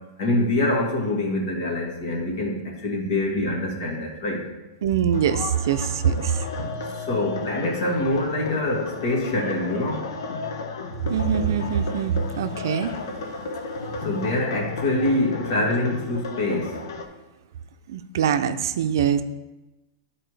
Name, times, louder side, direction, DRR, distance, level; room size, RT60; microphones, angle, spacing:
voice 1, 0.2-4.4 6.9-10.1 14.0-16.8, left 1 dB, 60° left, -2 dB, 2.2 m, -25 dB
voice 2, 4.8-6.4 11.1-12.9 17.9-19.2, right 8 dB, 75° right, 10 dB, 0.5 m, -23 dB
sound 1, 5.1-17.1, left 3 dB, 85° left, 0.8 m, -33 dB
11.0 x 4.1 x 3.3 m, 1.1 s
supercardioid pair, 145°, 2 cm